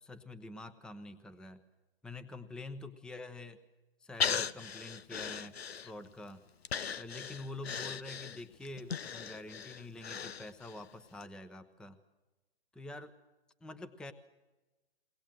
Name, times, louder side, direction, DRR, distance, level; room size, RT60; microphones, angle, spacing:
voice 1, 0.0-1.6 2.0-3.6 4.0-6.5 7.0-12.0 12.7-13.1 13.6-14.1, left 2 dB, 5° left, 10 dB, 0.7 m, -46 dB
Breathing, 4.2-6.2 6.6-10.8 11.2-11.3, left 7 dB, 85° left, 0.7 m, -38 dB
22.5 x 19.5 x 7.6 m, 1.1 s
hypercardioid pair, 125°, 30 cm